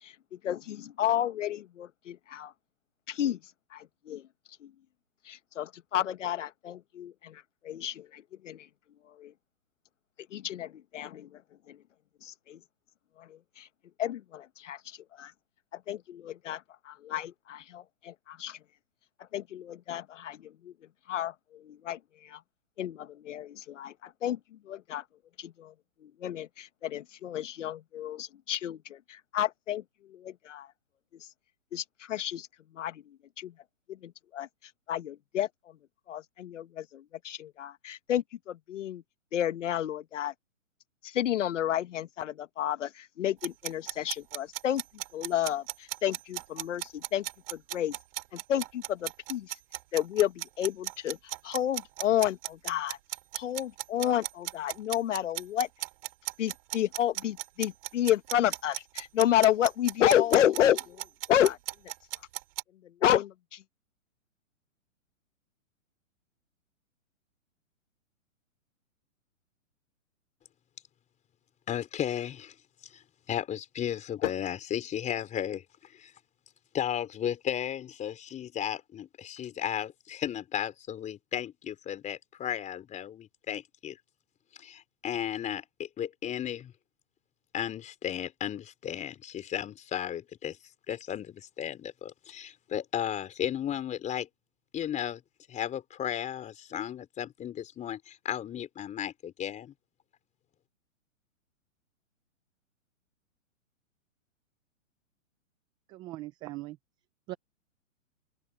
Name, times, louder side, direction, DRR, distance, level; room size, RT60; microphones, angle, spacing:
voice 1, 0.0-2.5 3.1-3.4 3.7-4.3 4.6-4.7 5.2-8.7 9.0-9.3 10.3-11.4 11.7-11.8 12.2-12.6 13.2-13.7 14.0-15.3 15.7-18.6 19.2-20.7 21.1-22.4 22.8-25.0 25.4-25.7 26.0-30.7 31.2-31.3 31.7-32.5 32.7-33.5 33.9-35.8 36.1-39.0 39.3-40.3 41.0-44.8 45.1-48.0 48.3-49.6 49.9-53.0 53.3-55.7 56.4-61.0 61.3-61.6 62.1-62.2 62.8-63.6 74.2-74.3, left 11 dB, 65° left, 1.3 m, -31 dB
sound 1, 43.4-62.6, right 18 dB, 45° right, 4.4 m, -36 dB
voice 2, 71.7-72.5 72.8-76.1 76.7-84.0 84.6-86.7 87.5-90.6 90.9-94.3 94.7-95.2 95.5-99.7, left 10 dB, 20° left, 4.4 m, -35 dB
voice 3, 105.9-106.8 107.3-107.4, right 17 dB, 10° right, 0.4 m, -40 dB
open air
hypercardioid pair, 140°, 40 cm